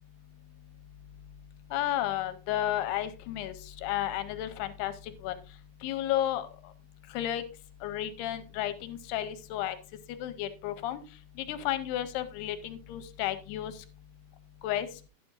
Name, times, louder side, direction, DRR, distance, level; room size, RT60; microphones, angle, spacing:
voice 1, 1.7-5.4 5.8-6.7 7.1-7.4 7.8-9.8 10.1-11.0 11.4-13.9 14.6-15.1, left 12 dB, 80° left, 11 dB, 2.6 m, -33 dB
11.5 x 11.0 x 2.5 m, 0.33 s
omnidirectional pair, 4.8 m